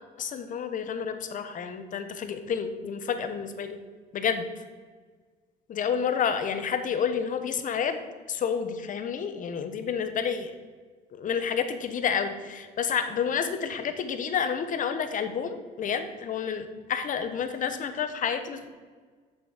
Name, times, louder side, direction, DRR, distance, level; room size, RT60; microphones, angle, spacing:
voice 1, 0.2-3.8 4.1-4.4 5.7-8.0 8.3-10.5 11.2-18.7, left 7 dB, 50° left, 9 dB, 1.1 m, -29 dB
7.3 x 6.8 x 6.6 m, 1.5 s
cardioid pair, 110°, 17 cm